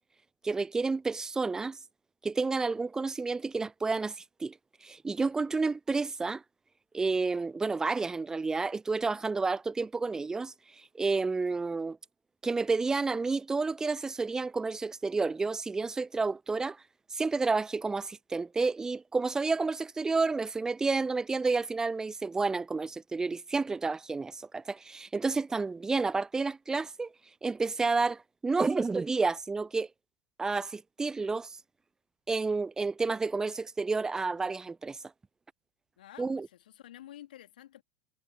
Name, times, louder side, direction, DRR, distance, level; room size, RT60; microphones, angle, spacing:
voice 1, 0.4-1.8 2.2-6.4 6.9-12.0 12.4-16.8 17.1-27.1 27.4-29.9 30.4-31.6 32.3-35.0 36.2-36.5, right 4 dB, 10° right, 0.4 m, -30 dB
voice 2, 36.0-37.8, left 12 dB, 60° left, 2.8 m, -50 dB
figure-of-eight pair, 85°, 5 cm